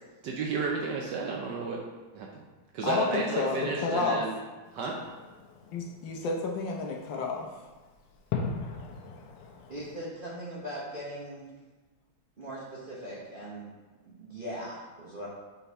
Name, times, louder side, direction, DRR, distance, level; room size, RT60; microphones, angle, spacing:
voice 1, 0.2-1.8 2.1-2.4 2.7-4.4 4.7-5.0, right 4 dB, 70° right, -1 dB, 1.1 m, -32 dB
voice 2, 2.8-4.2 5.7-7.5, left 4 dB, 70° left, 0 dB, 1.3 m, -30 dB
Fireworks, 4.6-10.0, left 5 dB, 85° left, 1.6 m, -40 dB
voice 3, 9.7-11.4 12.4-13.7 14.0-15.3, equal, 40° right, -8 dB, 0.8 m, -40 dB
5.9 x 3.9 x 4.2 m, 1.3 s
omnidirectional pair, 2.3 m